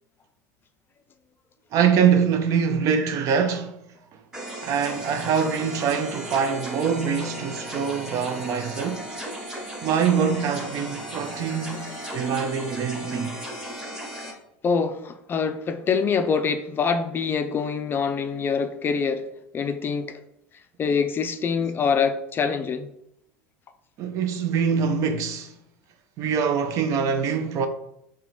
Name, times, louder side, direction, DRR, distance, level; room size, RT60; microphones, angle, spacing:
voice 1, 1.7-3.7 4.6-9.0 9.8-13.3 24.0-25.5 26.2-27.7, right 6 dB, 50° right, 0.5 m, -24 dB
sound 1, 4.3-14.3, right 1 dB, 10° right, 1.1 m, -36 dB
voice 2, 14.6-19.3 19.5-20.2 20.8-22.9, left 5 dB, 30° left, 0.4 m, -25 dB
3.7 x 2.9 x 3.2 m
hypercardioid pair, 90°, 7 cm